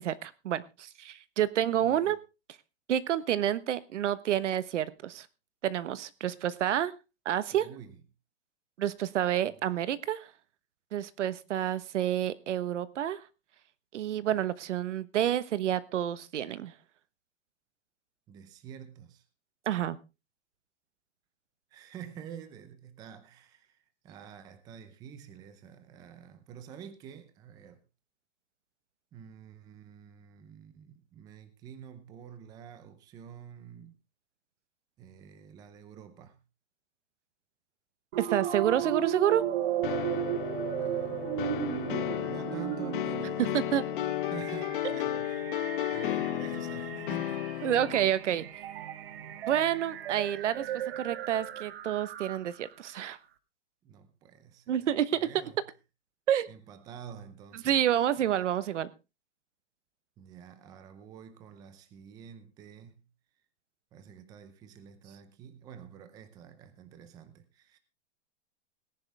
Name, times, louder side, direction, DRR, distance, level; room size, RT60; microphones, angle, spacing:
voice 1, 0.0-2.2 2.9-5.3 5.6-6.9 7.2-7.7 8.8-10.3 10.9-13.2 13.9-16.7 19.7-20.0 38.2-39.4 43.5-43.8 47.6-48.5 49.5-50.7 51.0-53.2 54.7-55.2 56.3-56.5 57.6-58.9, right 11 dB, 75° right, 1.2 m, -29 dB
voice 2, 1.8-2.2 7.5-8.0 18.3-19.2 21.7-27.8 29.1-34.0 35.0-36.4 40.8-41.2 41.6-41.8 42.3-43.9 44.2-45.6 45.9-47.7 53.8-54.8 55.1-55.6 56.5-57.8 60.2-63.0 63.9-67.8, right 8 dB, 10° right, 0.7 m, -48 dB
sound 1, 38.1-52.7, right 11 dB, 55° right, 1.4 m, -36 dB
sound 2, 39.8-48.1, left 13 dB, 45° left, 0.7 m, -33 dB
18.5 x 10.5 x 3.4 m
supercardioid pair, 175°, 36 cm